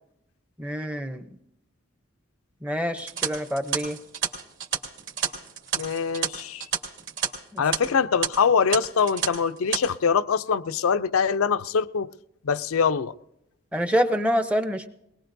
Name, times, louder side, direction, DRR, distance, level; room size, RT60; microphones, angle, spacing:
voice 1, 0.6-1.3 2.6-4.0 7.5-7.6 13.7-14.9, equal, 5° right, 0.6 m, -26 dB
sound 1, 3.0-7.3 7.6-7.8 8.2-8.3 8.7-9.3 9.6-9.8, right 8 dB, 60° right, 2.9 m, -29 dB
voice 2, 5.8-6.6 7.6-12.1 12.4-13.1, left 6 dB, 85° left, 0.5 m, -23 dB
22.0 x 20.5 x 2.6 m
head